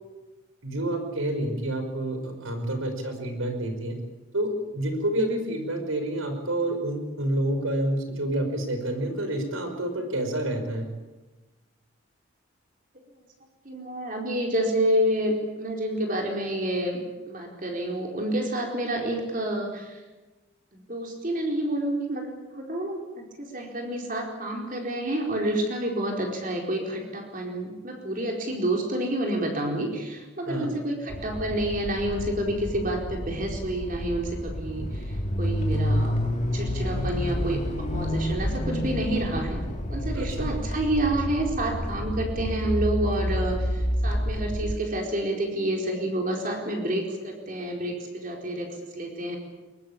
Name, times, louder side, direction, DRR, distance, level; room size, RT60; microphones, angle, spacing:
voice 1, 0.6-3.9 4.3-10.9 30.5-30.7 40.1-40.5, right 1 dB, 85° right, 6 dB, 5.5 m, -28 dB
voice 2, 13.6-17.0 17.3-20.0 20.7-22.3 22.5-36.2 36.5-39.6 39.9-49.4, right 1 dB, 40° right, 1 dB, 4.5 m, -29 dB
sound 1, 31.1-44.7, equal, 35° left, 2.8 m, -29 dB
22.5 x 22.0 x 8.8 m, 1.2 s
head